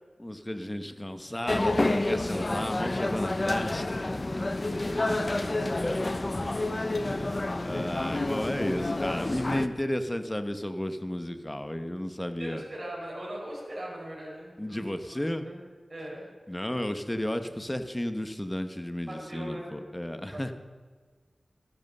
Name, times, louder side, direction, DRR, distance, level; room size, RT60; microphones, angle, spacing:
voice 1, 0.2-4.9 5.8-6.0 6.9-12.6 14.6-15.5 16.5-20.5, left 1 dB, 15° left, 8 dB, 1.0 m, -33 dB
sound 1, 1.5-9.7, left 2 dB, 40° left, 0.7 m, -29 dB
voice 2, 4.4-5.1 12.4-14.8 15.1-15.2 15.4-15.6 15.9-16.2 19.1-19.7 20.3-20.5, right 1 dB, 40° right, -5 dB, 5.2 m, -40 dB
13.5 x 11.0 x 6.7 m, 1.5 s
wide cardioid pair, 75°, 0 cm